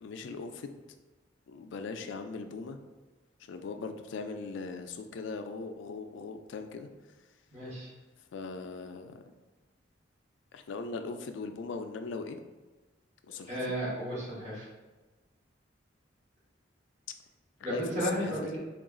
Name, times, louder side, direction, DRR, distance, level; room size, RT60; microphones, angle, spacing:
voice 1, 0.0-0.8 1.5-2.8 3.5-6.9 8.3-9.2 10.5-12.4 13.3-13.6 17.6-18.3, left 4 dB, 70° left, 7 dB, 0.3 m, -39 dB
voice 2, 7.5-7.9 13.5-14.7 17.6-18.6, equal, 35° right, -7 dB, 1.3 m, -33 dB
3.8 x 2.4 x 3.6 m, 1.2 s
head